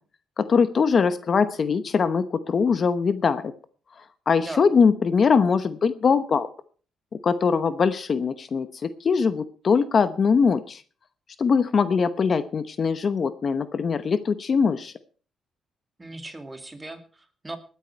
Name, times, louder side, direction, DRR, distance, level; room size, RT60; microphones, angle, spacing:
voice 1, 0.4-3.5 4.3-6.5 7.2-10.8 11.4-14.9, left 5 dB, 45° left, 12 dB, 0.9 m, -22 dB
voice 2, 4.3-4.7 16.0-17.6, right 2 dB, 20° right, 7 dB, 2.4 m, -38 dB
19.5 x 9.3 x 4.5 m, 0.39 s
cardioid pair, 90°, 0 cm